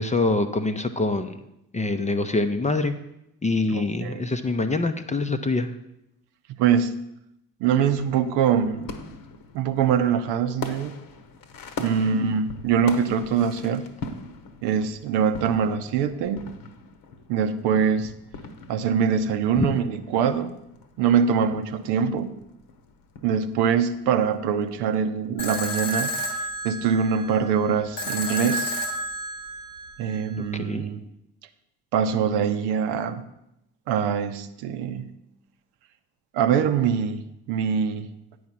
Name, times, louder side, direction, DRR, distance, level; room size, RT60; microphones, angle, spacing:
voice 1, 0.0-1.4 1.7-2.9 3.4-5.7 11.8-12.1 19.6-19.7 30.4-30.8, left 2 dB, 15° left, 8 dB, 0.7 m, -25 dB
voice 2, 3.7-4.2 6.6-7.0 7.6-8.9 9.5-11.0 11.8-13.9 14.6-16.5 17.3-18.1 18.7-20.5 21.0-22.4 23.2-26.1 26.6-28.8 30.0-31.0 31.9-33.2 33.9-35.1 36.3-38.1, right 7 dB, 60° right, 9 dB, 0.8 m, -23 dB
sound 1, 7.9-25.3, left 4 dB, 45° left, 1.1 m, -42 dB
sound 2, 25.4-30.4, equal, 85° left, 1.1 m, -31 dB
9.3 x 4.8 x 7.1 m, 0.84 s
figure-of-eight pair, 45°, 46 cm